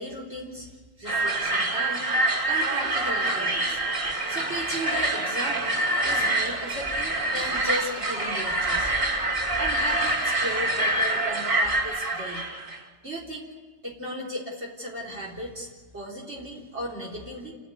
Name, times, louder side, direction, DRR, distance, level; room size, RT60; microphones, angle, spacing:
voice 1, 0.0-2.1 2.4-3.8 4.3-8.9 9.6-12.4 13.0-13.5 13.8-17.5, equal, 65° right, -3 dB, 4.1 m, -35 dB
sound 1, 1.1-12.8, right 2 dB, 25° right, 2.6 m, -26 dB
29.5 x 12.0 x 9.7 m, 1.4 s
omnidirectional pair, 1.2 m